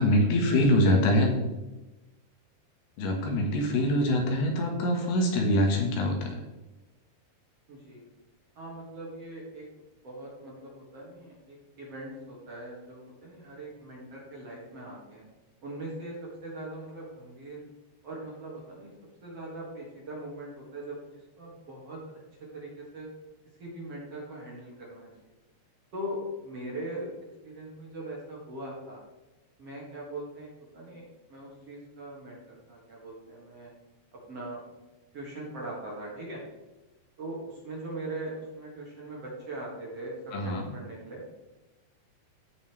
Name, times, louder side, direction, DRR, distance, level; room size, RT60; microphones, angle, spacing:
voice 1, 0.0-1.3 3.0-6.4 40.3-40.7, left 1 dB, 75° left, 1 dB, 3.5 m, -24 dB
voice 2, 7.7-8.0 8.6-9.6 10.0-15.3 15.6-16.1 16.4-17.6 18.0-18.9 19.2-21.0 21.4-22.0 22.5-23.1 23.6-25.1 25.9-27.1 27.4-29.0 29.6-30.5 30.7-32.4 32.7-33.7 34.3-34.6 35.1-36.4 37.2-37.4 37.6-41.3, right 1 dB, 45° right, -4 dB, 2.5 m, -40 dB
16.5 x 5.6 x 3.3 m, 1.1 s
omnidirectional pair, 4.6 m